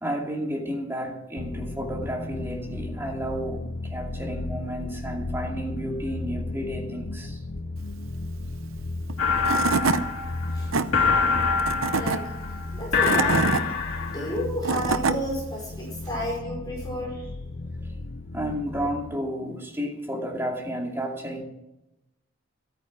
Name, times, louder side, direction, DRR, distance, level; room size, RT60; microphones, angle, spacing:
voice 1, 0.0-7.4 17.8-18.0 18.3-21.4, equal, 10° right, 2.5 m, -32 dB
sound 1, 1.4-19.2, left 2 dB, 60° left, 0.8 m, -35 dB
Tools / Wood, 9.1-9.2 9.4-10.0 10.5-10.8 11.6-12.2 12.8-13.6 14.4-15.2, right 4 dB, 75° right, 0.8 m, -24 dB
sound 2, 9.2-14.4, left 5 dB, 85° left, 3.2 m, -25 dB
voice 2, 11.9-12.3 12.7-13.6 14.1-17.3, equal, 20° left, 5.0 m, -31 dB
13.5 x 9.3 x 6.2 m
head